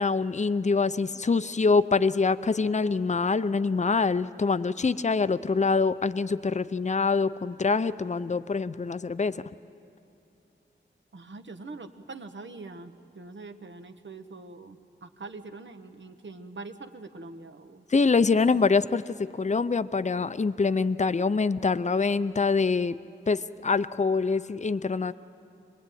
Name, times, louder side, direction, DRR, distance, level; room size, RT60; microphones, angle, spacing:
voice 1, 0.0-9.4 17.9-23.0 23.3-25.1, left 4 dB, 35° left, 13 dB, 0.6 m, -25 dB
voice 2, 11.1-17.8, right 3 dB, 70° right, 8 dB, 1.2 m, -43 dB
26.0 x 20.0 x 9.3 m, 2.8 s
wide cardioid pair, 65°, 20 cm